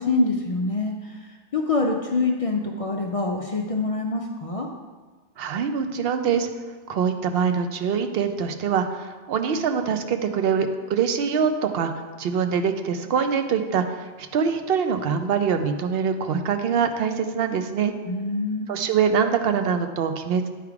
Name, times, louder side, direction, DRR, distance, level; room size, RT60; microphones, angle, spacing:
voice 1, 0.0-4.7 18.1-18.9, left 3 dB, 50° left, 0 dB, 0.4 m, -25 dB
voice 2, 5.4-6.5 6.9-11.9 12.2-17.9 18.7-20.5, right 6 dB, 65° right, 7 dB, 0.7 m, -24 dB
9.2 x 3.5 x 4.7 m, 1.4 s
omnidirectional pair, 1.2 m